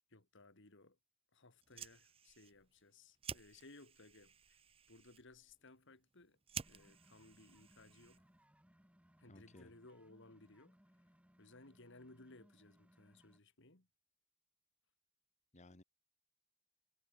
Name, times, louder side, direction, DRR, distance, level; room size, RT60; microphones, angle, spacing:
voice 1, 0.1-1.0 1.3-4.6 4.9-6.4 6.7-8.2 9.2-10.8 11.4-13.9, left 2 dB, 60° left, 2.6 m, -61 dB
Fire, 1.5-8.5, right 7 dB, 25° right, 1.0 m, -53 dB
sound 1, 6.5-13.4, equal, 5° right, 2.7 m, -69 dB
voice 2, 9.3-9.7 15.5-15.8, left 2 dB, 30° left, 1.4 m, -59 dB
head